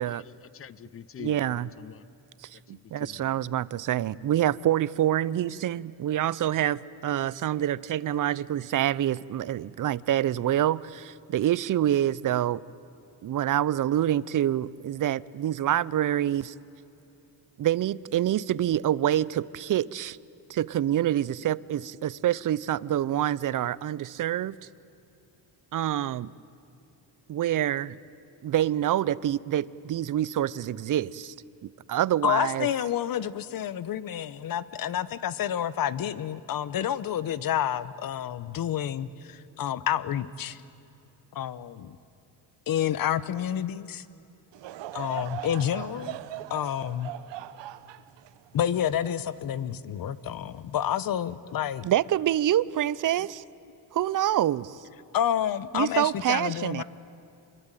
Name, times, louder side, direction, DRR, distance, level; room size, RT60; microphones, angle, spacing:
voice 1, 0.0-2.1 2.7-3.4, left 9 dB, 30° left, 20 dB, 0.6 m, -45 dB
voice 2, 1.2-1.7 2.4-12.6 13.2-16.5 17.6-20.2 20.5-24.5 25.7-26.3 27.3-28.0 28.4-31.3 31.9-32.7 51.8-53.4 53.9-54.8 55.7-56.8, right 12 dB, 50° right, 20 dB, 0.7 m, -26 dB
voice 3, 32.2-40.6 41.3-42.0 42.7-44.0 44.9-46.2 46.5-47.1 48.5-51.9 55.1-56.8, left 10 dB, 55° left, 16 dB, 1.0 m, -29 dB
Laughter / Crowd, 44.5-50.0 50.5-50.6 51.5-51.7, right 13 dB, 80° right, 1.0 m, -41 dB
26.5 x 22.5 x 9.1 m, 2.8 s
cardioid pair, 110°, 42 cm